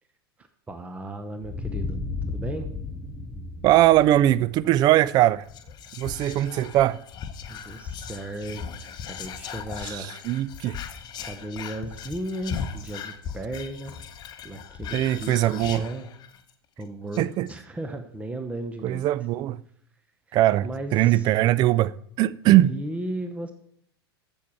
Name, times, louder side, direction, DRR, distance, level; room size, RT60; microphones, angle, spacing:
voice 1, 0.4-2.0 2.3-2.7 7.5-10.2 10.6-10.7 11.2-14.0 14.4-16.1 16.8-19.0 20.3-20.4 20.6-21.3 22.6-23.5, right 1 dB, 10° right, 0.9 m, -35 dB
sound 1, 1.4-6.0, left 3 dB, 10° left, 1.8 m, -34 dB
voice 2, 3.6-5.4 6.0-7.0 9.8-10.8 14.9-15.9 17.2-17.5 18.8-19.6 20.3-22.7, right 14 dB, 30° right, 0.4 m, -21 dB
Whispering, 5.4-16.5 16.8-16.9 17.1-17.5, left 7 dB, 30° left, 0.9 m, -38 dB
8.5 x 7.0 x 6.2 m
figure-of-eight pair, 90°, 13 cm